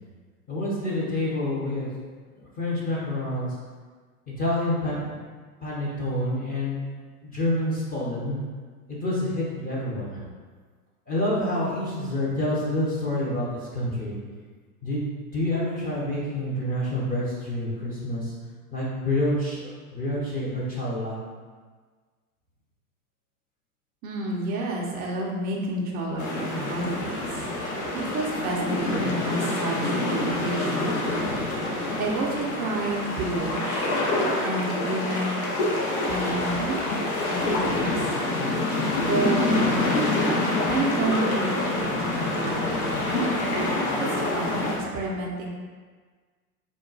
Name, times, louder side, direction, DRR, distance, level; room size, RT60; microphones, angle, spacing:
voice 1, 0.5-1.9 2.4-3.5 4.4-5.2 5.6-6.8 7.2-8.4 8.9-10.2 11.1-13.5 13.7-14.2 14.8-18.3 18.7-21.2, left 1 dB, 20° left, -7 dB, 0.7 m, -28 dB
voice 2, 24.0-27.4 27.9-31.1 32.0-34.0 34.4-35.4 36.1-36.8 37.3-38.0 39.0-39.6 40.7-43.3 44.0-45.5, right 2 dB, 20° right, -1 dB, 0.4 m, -30 dB
sound 1, 26.2-44.8, left 2 dB, 65° left, 1.0 m, -26 dB
3.7 x 2.3 x 3.9 m, 1.5 s
hypercardioid pair, 120°, 46 cm